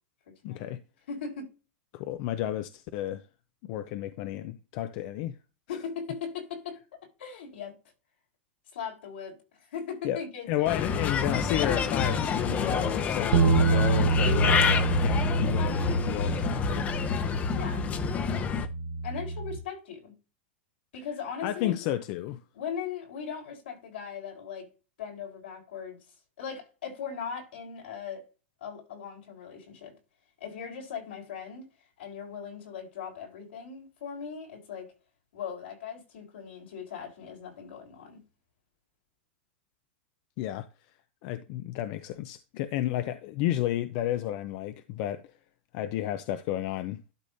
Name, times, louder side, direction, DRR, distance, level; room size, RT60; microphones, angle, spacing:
voice 1, 0.4-0.8 1.9-3.2 3.6-5.4 10.0-10.2 10.5-16.9 21.4-22.4 40.4-40.7 41.2-45.2 45.7-47.1, left 13 dB, 50° left, 0.6 m, -32 dB
voice 2, 1.1-1.5 5.7-6.8 7.2-7.8 8.7-10.8 17.6-17.9 19.0-20.1 20.9-21.8 22.5-24.7 25.0-26.0 26.4-28.2 28.6-29.9 30.4-31.7 32.0-34.9 35.3-38.2, left 6 dB, 85° left, 4.0 m, -39 dB
Bird, 10.7-18.7, left 6 dB, 25° left, 0.8 m, -28 dB
sound 1, 13.3-19.6, right 4 dB, 65° right, 0.9 m, -27 dB
12.0 x 5.3 x 2.7 m
supercardioid pair, 135°, 6 cm